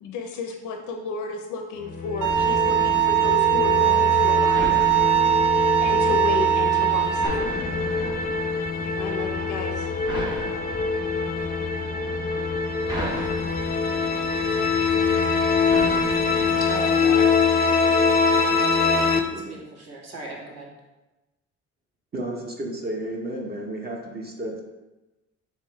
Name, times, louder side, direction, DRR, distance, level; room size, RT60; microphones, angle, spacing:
voice 1, 0.0-4.8 5.6-7.4 8.8-9.9, left 4 dB, 80° left, 3 dB, 0.5 m, -32 dB
sound 1, 1.8-19.2, left 4 dB, 30° left, 0.4 m, -24 dB
sound 2, 2.2-16.7, right 1 dB, 15° right, 1.2 m, -37 dB
Bowed string instrument, 2.2-7.3, right 14 dB, 75° right, 0.8 m, -21 dB
voice 2, 16.7-17.3 18.3-19.1 19.5-20.7, right 1 dB, 55° right, -2 dB, 1.3 m, -37 dB
voice 3, 22.1-24.6, right 1 dB, 30° right, 0 dB, 0.7 m, -32 dB
3.5 x 2.9 x 4.4 m, 1.1 s
cardioid pair, 90°, 30 cm